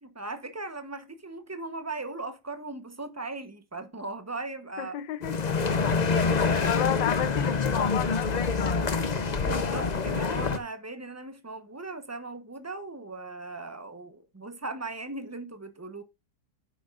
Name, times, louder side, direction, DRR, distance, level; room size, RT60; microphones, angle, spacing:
voice 1, 0.0-5.0 5.6-6.8 9.4-16.0, right 2 dB, 15° right, 0.6 m, -38 dB
voice 2, 4.8-5.4 6.7-8.8, left 11 dB, 80° left, 1.5 m, -32 dB
sound 1, 5.2-10.6, left 4 dB, 55° left, 0.4 m, -26 dB
9.7 x 7.3 x 2.5 m
omnidirectional pair, 2.0 m